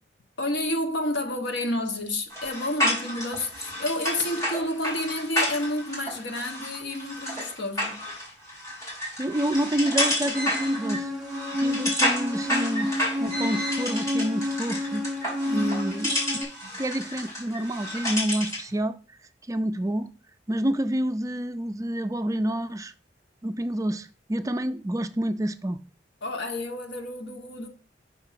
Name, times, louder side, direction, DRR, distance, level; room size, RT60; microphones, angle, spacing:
voice 1, 0.4-8.0 15.4-15.8 26.2-27.7, left 1 dB, 70° left, 1.3 m, -30 dB
sound 1, 2.3-18.7, left 1 dB, 20° left, 3.3 m, -30 dB
voice 2, 9.2-11.1 11.6-12.9 13.2-15.0 15.5-16.2 16.8-19.0 19.5-20.1 20.5-22.9 23.4-25.8, right 1 dB, 20° right, 0.3 m, -28 dB
sound 2, 10.5-16.4, left 1 dB, ahead, 2.4 m, -30 dB
5.7 x 4.5 x 5.7 m
head